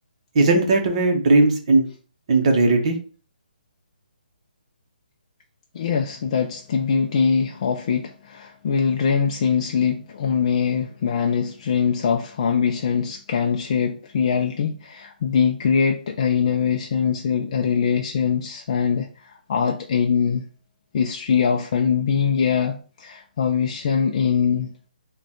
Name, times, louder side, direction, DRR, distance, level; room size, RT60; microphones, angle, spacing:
voice 1, 0.3-1.8 2.3-3.0, right 2 dB, 35° right, 0.8 m, -17 dB
voice 2, 5.7-20.4 20.9-24.9, left 6 dB, 35° left, 0.3 m, -22 dB
5.0 x 2.2 x 2.9 m
hypercardioid pair, 165°, 5 cm